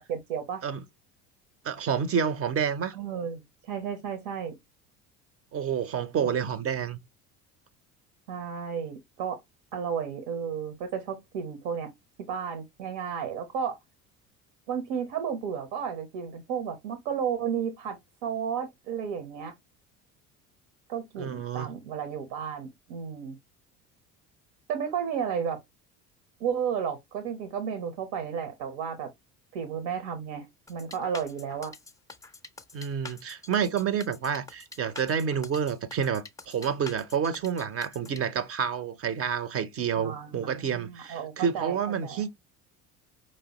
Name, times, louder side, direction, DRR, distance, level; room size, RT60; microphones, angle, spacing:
voice 1, 0.1-0.6 3.0-4.5 6.2-6.4 8.3-9.4 9.7-11.9 12.3-13.8 14.7-18.0 18.2-19.5 20.9-23.4 24.7-25.6 26.4-29.1 29.5-31.7 40.0-42.2, right 7 dB, 60° right, 1.0 m, -33 dB
voice 2, 1.6-3.0 5.5-7.0 21.2-21.7 32.7-42.3, right 7 dB, 30° right, 0.7 m, -29 dB
sound 1, 30.7-38.2, left 3 dB, 10° left, 0.5 m, -45 dB
4.9 x 3.0 x 2.9 m
figure-of-eight pair, 65°, 44 cm